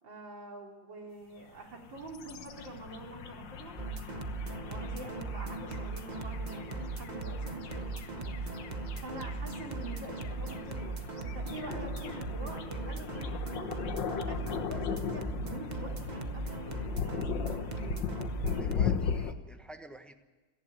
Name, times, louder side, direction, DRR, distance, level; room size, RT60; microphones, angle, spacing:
voice 1, 0.0-3.8 4.7-8.4 9.0-13.7 14.3-18.0, right 2 dB, 65° right, 1 dB, 3.8 m, -46 dB
sound 1, 1.6-19.3, left 6 dB, 60° left, 1.8 m, -38 dB
sound 2, 3.8-18.7, right 4 dB, 45° right, 0.5 m, -39 dB
voice 2, 18.4-20.1, right 1 dB, ahead, 6 dB, 0.8 m, -48 dB
18.0 x 14.5 x 9.9 m, 1.3 s
omnidirectional pair, 2.3 m